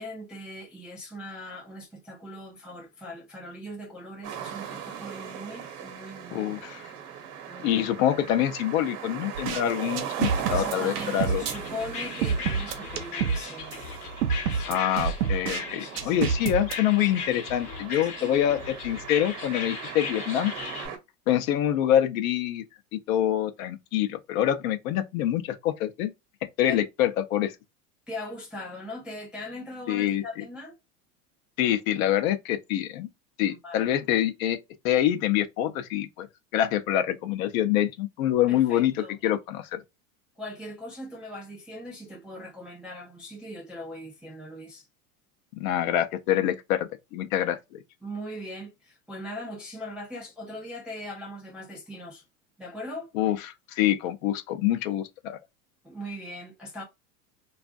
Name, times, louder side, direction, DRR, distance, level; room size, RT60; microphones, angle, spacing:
voice 1, 0.0-6.5 7.5-7.8 10.5-13.7 14.5-14.8 15.8-16.2 18.2-18.4 26.7-26.8 28.1-30.8 33.4-34.0 38.5-39.2 40.4-44.9 48.0-52.2 52.6-53.1 55.8-56.8, left 1 dB, ahead, 0.3 m, -40 dB
sound 1, 4.2-21.0, right 8 dB, 55° right, 1.0 m, -39 dB
voice 2, 6.3-6.8 7.6-11.4 14.6-20.5 21.3-22.6 23.1-26.1 26.6-27.5 29.9-30.2 31.6-33.1 33.4-34.6 34.8-36.3 36.5-38.9 39.2-39.8 45.6-47.8 53.1-53.4 53.7-55.4, left 11 dB, 60° left, 0.6 m, -25 dB
sound 2, 9.3-9.6 10.0-11.5 12.2-13.4 13.7-13.8 14.2-15.6 16.0-16.7, right 6 dB, 85° right, 0.7 m, -27 dB
sound 3, 11.4-20.9, left 6 dB, 80° left, 0.9 m, -38 dB
2.5 x 2.4 x 2.3 m
hypercardioid pair, 100°, 46 cm